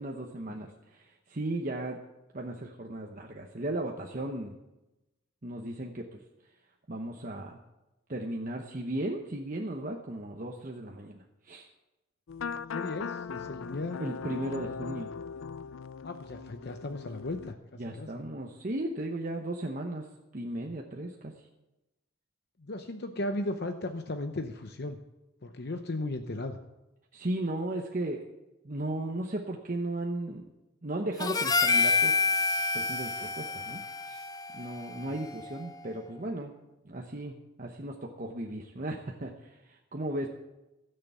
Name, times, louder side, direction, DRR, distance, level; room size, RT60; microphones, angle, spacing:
voice 1, 0.0-2.0 2.3-4.5 5.4-6.2 6.9-7.6 8.1-11.7 14.0-15.1 17.8-20.1 20.3-21.3 27.1-28.2 28.6-30.5 30.8-32.3 32.7-34.2 34.5-36.5 36.8-40.3, right 1 dB, 40° right, 1 dB, 1.0 m, -36 dB
sound 1, 12.3-17.5, left 6 dB, 80° left, 0.4 m, -39 dB
voice 2, 12.7-14.0 16.0-18.1 22.6-25.0 25.4-26.6 35.1-35.2, left 2 dB, 55° left, 7 dB, 0.8 m, -36 dB
Harmonica, 31.2-35.7, left 4 dB, 20° left, 0.5 m, -28 dB
16.0 x 6.8 x 8.2 m, 1.0 s
head